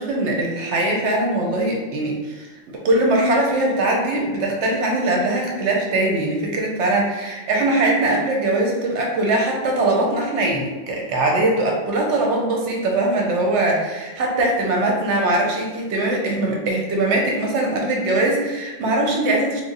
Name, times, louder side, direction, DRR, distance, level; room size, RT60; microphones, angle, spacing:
voice 1, 0.0-19.6, right 2 dB, 60° right, 0 dB, 0.8 m, -21 dB
3.0 x 2.0 x 3.9 m, 1.3 s
omnidirectional pair, 1.6 m